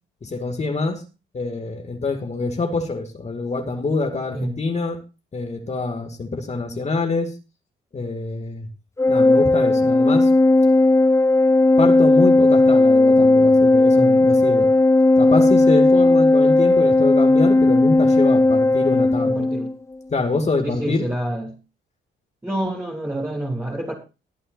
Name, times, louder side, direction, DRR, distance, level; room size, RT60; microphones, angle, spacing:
voice 1, 0.2-1.0 1.3-5.0 5.3-7.3 7.9-8.7 9.1-10.3 11.8-14.7 15.2-19.4 20.1-21.1, left 3 dB, 35° left, 2.4 m, -25 dB
Organ, 9.0-19.7, left 2 dB, 15° left, 0.6 m, -15 dB
voice 2, 19.2-19.7 20.6-21.6 22.4-23.9, right 1 dB, 10° right, 3.2 m, -28 dB
23.5 x 8.6 x 2.6 m
cardioid pair, 90°, 20 cm